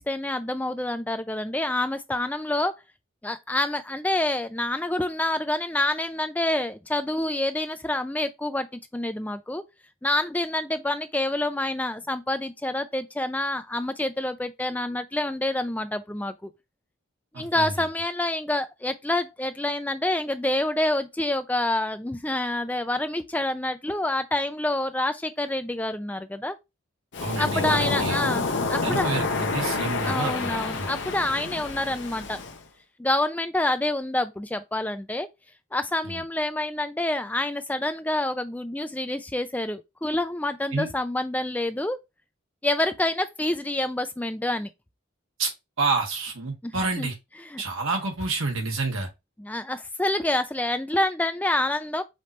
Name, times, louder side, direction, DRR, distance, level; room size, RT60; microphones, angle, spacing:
voice 1, 0.0-2.7 3.2-9.6 10.0-16.5 17.4-26.6 27.4-29.1 30.0-32.4 33.0-35.3 35.7-42.0 42.6-44.7 46.6-47.1 47.4-47.6 49.4-52.0, left 1 dB, 10° left, 0.3 m, -27 dB
voice 2, 17.3-17.7 27.2-28.2 28.8-30.9 36.0-36.2 40.7-40.9 45.4-45.5 45.8-47.2 47.6-49.1, right 3 dB, 80° right, 1.4 m, -29 dB
Waves surf, 27.1-32.6, left 3 dB, 60° left, 0.7 m, -28 dB
5.1 x 2.9 x 3.1 m
head